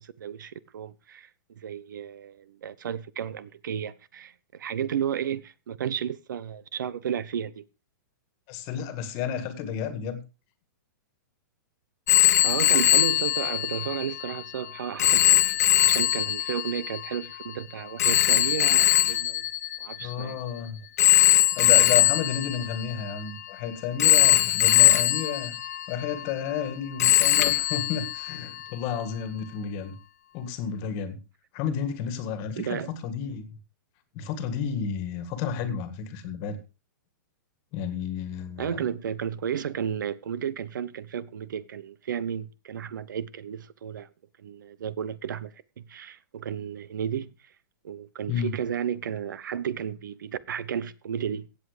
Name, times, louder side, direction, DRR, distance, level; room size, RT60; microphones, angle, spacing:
voice 1, 0.0-7.6 12.4-15.4 15.8-19.5 19.8-20.4 32.5-32.9 38.6-44.1 44.4-47.5 47.8-51.5, right 8 dB, 70° right, 1.0 m, -33 dB
voice 2, 8.5-10.2 20.0-20.8 21.5-25.6 25.9-30.0 30.3-31.2 31.5-33.6 34.1-36.6 37.7-38.8 48.3-48.5, left 7 dB, 25° left, 1.8 m, -31 dB
Telephone, 12.1-20.4 21.0-23.5 24.0-26.7 27.0-28.7, left 12 dB, 50° left, 1.2 m, -22 dB
16.5 x 7.9 x 5.1 m
hypercardioid pair, 175°, 11 cm